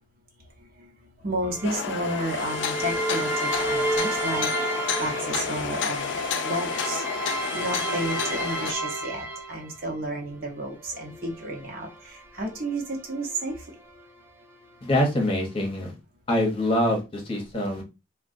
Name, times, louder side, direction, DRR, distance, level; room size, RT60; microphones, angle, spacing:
voice 1, 1.2-4.5 5.0-6.1 6.4-7.0 7.5-11.9 12.4-12.8 13.1-13.5, right 1 dB, 50° right, -1 dB, 1.0 m, -31 dB
sound 1, 1.4-9.9 10.7-14.0, right 2 dB, 10° right, 0.5 m, -32 dB
sound 2, 1.6-8.7, left 6 dB, 75° left, 0.4 m, -30 dB
voice 2, 14.8-15.9 16.3-17.8, left 1 dB, 30° left, 2 dB, 0.8 m, -24 dB
3.5 x 2.3 x 2.6 m, 0.26 s
head